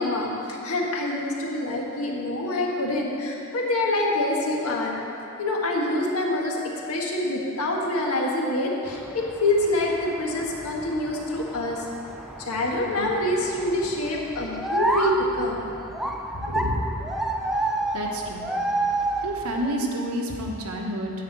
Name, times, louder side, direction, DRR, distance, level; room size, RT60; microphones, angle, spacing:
voice 1, 0.0-5.0 5.4-6.6 6.9-11.9 12.4-15.6 16.5-16.6, left 1 dB, 85° left, -1 dB, 1.5 m, -26 dB
sound 1, 8.9-19.7, right 1 dB, ahead, 0.4 m, -30 dB
voice 2, 16.3-16.8 17.9-18.5 19.2-21.1, equal, 80° right, 0 dB, 1.3 m, -29 dB
9.6 x 5.0 x 7.8 m, 2.7 s
head